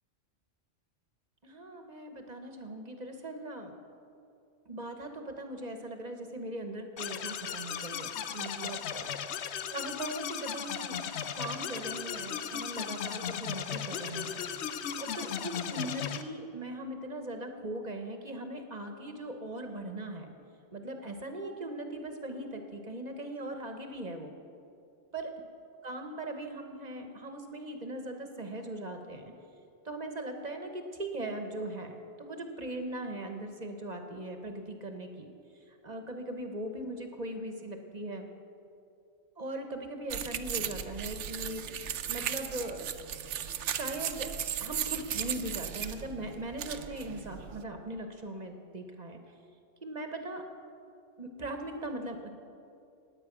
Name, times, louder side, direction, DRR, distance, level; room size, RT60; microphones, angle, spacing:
voice 1, 1.4-3.7 4.7-9.1 9.7-11.0 11.3-14.4 15.0-20.3 20.7-24.3 25.1-25.3 25.8-29.3 29.8-35.3 35.8-38.3 39.4-41.6 42.1-42.8 43.6-44.3 44.6-49.2 49.8-50.5 51.2-52.3, right 1 dB, 35° right, 5 dB, 1.1 m, -39 dB
sound 1, 7.0-16.2, left 8 dB, 70° left, 0.9 m, -36 dB
sound 2, 40.1-47.6, right 9 dB, 75° right, 1.0 m, -36 dB
18.5 x 8.7 x 6.0 m, 2.6 s
omnidirectional pair, 1.2 m